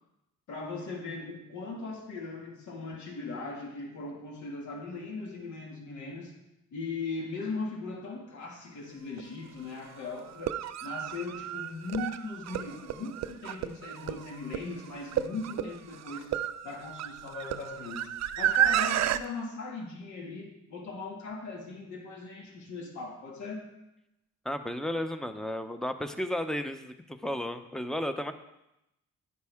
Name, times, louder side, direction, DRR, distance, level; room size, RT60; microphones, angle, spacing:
voice 1, 0.5-6.4 6.7-16.3 16.6-18.1 18.4-23.6, left 3 dB, 70° left, 0 dB, 2.2 m, -39 dB
sound 1, 9.2-9.3 10.3-19.2, right 11 dB, 60° right, 0.5 m, -31 dB
voice 2, 24.4-28.3, left 1 dB, ahead, 9 dB, 0.7 m, -33 dB
9.6 x 9.6 x 3.6 m, 0.89 s
cardioid pair, 90°, 30 cm